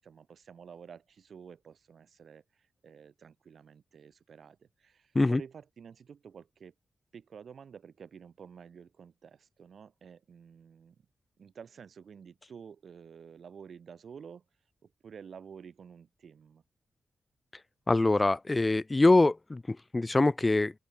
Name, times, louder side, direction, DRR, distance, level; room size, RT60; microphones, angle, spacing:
voice 1, 0.0-6.7 7.1-10.9 11.4-14.4 14.8-16.6, right 7 dB, 70° right, 6.4 m, -50 dB
voice 2, 17.9-20.7, left 2 dB, 30° left, 1.1 m, -24 dB
open air
cardioid pair, 55°, 0 cm